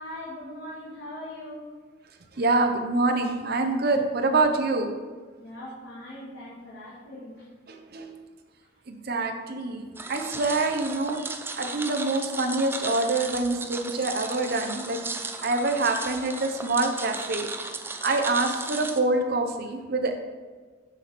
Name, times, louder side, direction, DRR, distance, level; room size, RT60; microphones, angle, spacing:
voice 1, 0.0-1.7 5.4-7.5, left 1 dB, 65° left, -8 dB, 1.8 m, -40 dB
voice 2, 2.4-4.9 7.7-8.1 8.9-11.2 11.6-15.0 15.4-17.5 18.0-20.1, right 2 dB, 55° right, 4 dB, 0.8 m, -26 dB
sound 1, 9.9-19.0, right 3 dB, 10° right, 0.4 m, -36 dB
6.9 x 6.1 x 4.2 m, 1.5 s
head